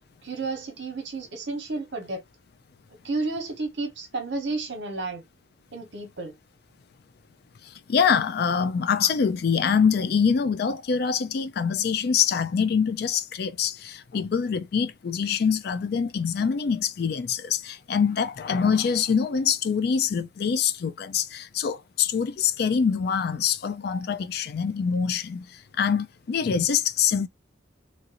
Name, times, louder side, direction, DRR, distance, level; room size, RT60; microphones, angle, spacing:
voice 1, 0.2-2.2 3.0-5.2 5.7-6.3, right 3 dB, 60° right, 0.9 m, -31 dB
voice 2, 7.6-27.3, left 6 dB, 50° left, 0.3 m, -25 dB
3.1 x 2.5 x 2.8 m
head